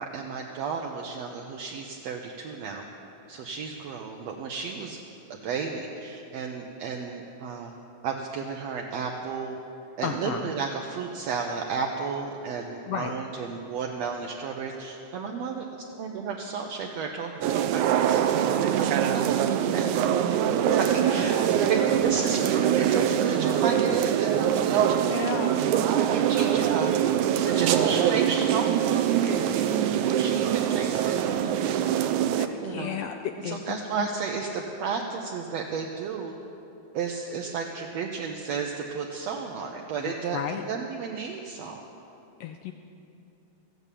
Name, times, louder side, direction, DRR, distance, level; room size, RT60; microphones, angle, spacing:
voice 1, 0.0-2.8 3.3-5.0 5.3-7.7 8.0-9.6 10.0-15.6 15.9-19.9 20.7-21.3 21.7-25.3 25.7-26.9 27.4-31.8 32.6-33.0 33.4-36.3 36.9-41.8, right 5 dB, 70° right, 1 dB, 1.8 m, -33 dB
voice 2, 10.0-10.4 12.9-13.1 25.0-25.5 32.3-33.1 33.4-34.1 40.3-40.6 42.4-42.7, left 8 dB, 90° left, 5 dB, 1.3 m, -33 dB
sound 1, 17.4-32.5, right 9 dB, 90° right, 2.1 m, -24 dB
15.0 x 9.1 x 8.3 m, 2.8 s
omnidirectional pair, 3.5 m